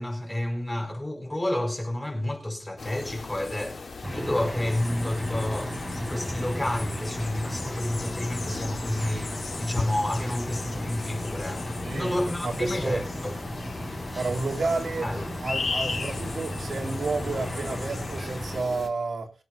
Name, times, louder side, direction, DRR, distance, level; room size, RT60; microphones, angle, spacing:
voice 1, 0.0-13.3 15.0-15.3, left 1 dB, 15° left, 4.4 m, -30 dB
sound 1, 2.8-18.9, left 4 dB, 60° left, 2.8 m, -37 dB
sound 2, 4.0-18.6, equal, ahead, 5.4 m, -35 dB
voice 2, 11.8-13.0 14.1-15.1 15.4-19.3, right 3 dB, 65° right, 3.0 m, -31 dB
23.5 x 8.6 x 2.7 m
wide cardioid pair, 145°, 0 cm